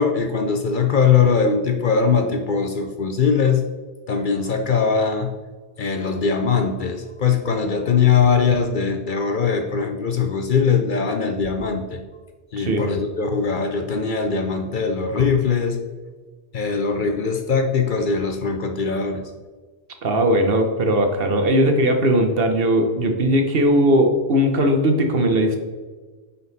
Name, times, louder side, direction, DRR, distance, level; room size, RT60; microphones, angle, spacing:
voice 1, 0.0-3.7 4.1-5.3 5.8-12.0 12.5-15.8 16.5-19.3, left 6 dB, 55° left, 5 dB, 0.7 m, -21 dB
voice 2, 20.0-25.6, equal, 60° right, 5 dB, 1.1 m, -18 dB
9.6 x 3.9 x 4.0 m, 1.4 s
omnidirectional pair, 1.2 m